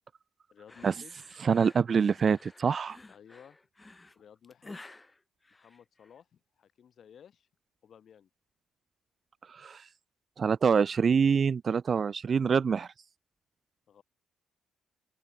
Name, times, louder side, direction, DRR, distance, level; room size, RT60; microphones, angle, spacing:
voice 1, 0.5-1.2 3.1-3.6 4.1-4.9 5.5-7.5 7.8-8.3 13.9-14.0, left 8 dB, 60° left, 5.4 m, -55 dB
sound 1, 0.7-6.2, left 2 dB, 15° left, 6.2 m, -52 dB
voice 2, 1.4-3.0 9.5-9.8 10.4-12.9, right 6 dB, 45° right, 0.5 m, -25 dB
open air
cardioid pair, 90°, 0 cm